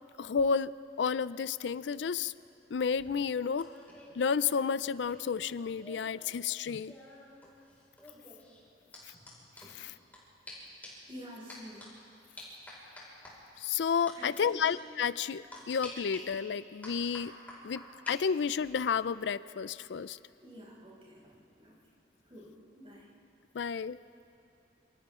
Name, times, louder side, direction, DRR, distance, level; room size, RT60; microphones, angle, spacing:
voice 1, 0.2-0.7 1.0-2.3 2.7-3.7 4.1-6.9 9.7-9.9 13.6-17.3 17.6-20.2 23.5-24.0, left 6 dB, 85° left, 17 dB, 0.4 m, -31 dB
sound 1, 2.9-6.2 6.5-10.2 10.5-10.6 10.8-11.1 11.5-11.9 12.4-13.3 14.1-14.4 14.6-14.7 15.5-16.2 16.8-18.1 18.5-18.8, left 1 dB, 10° left, 5.3 m, -50 dB
voice 2, 11.1-11.9 14.1-14.6 20.4-21.8 22.3-23.1, equal, 35° right, -6 dB, 6.4 m, -49 dB
28.0 x 27.5 x 3.7 m, 2.6 s
head